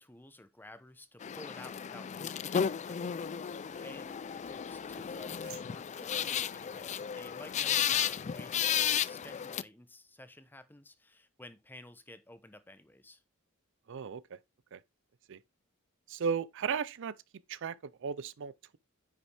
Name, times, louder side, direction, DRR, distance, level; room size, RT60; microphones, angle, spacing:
voice 1, 0.0-3.2 3.8-13.2, left 1 dB, 10° left, 0.9 m, -53 dB
sound 1, 1.2-9.6, left 8 dB, 35° left, 0.3 m, -34 dB
sound 2, 3.1-7.7, right 7 dB, 80° right, 2.2 m, -60 dB
voice 2, 13.9-14.2 14.7-14.8 15.3-15.4 16.1-17.1 17.5-17.7 18.0-18.8, right 6 dB, 60° right, 0.5 m, -35 dB
9.7 x 5.4 x 3.4 m
head